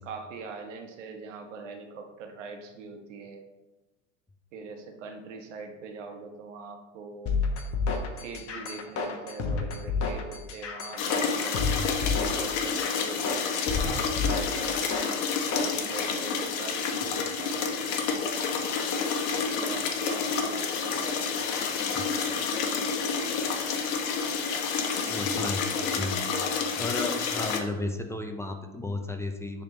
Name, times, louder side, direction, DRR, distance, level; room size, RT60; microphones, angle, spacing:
voice 1, 0.0-3.4 4.5-7.4 8.2-11.7 12.0-13.3 13.8-15.2 15.5-18.6 19.4-21.2 21.5-23.4, right 4 dB, 80° right, 4 dB, 1.3 m, -43 dB
sound 1, 7.3-15.7, left 4 dB, 40° left, 1.2 m, -30 dB
sound 2, 11.0-27.6, left 5 dB, 70° left, 1.2 m, -29 dB
voice 2, 25.1-25.7 26.0-29.6, left 2 dB, 10° left, 5 dB, 0.5 m, -34 dB
9.8 x 3.6 x 4.0 m, 1.1 s
hypercardioid pair, 105°, 37 cm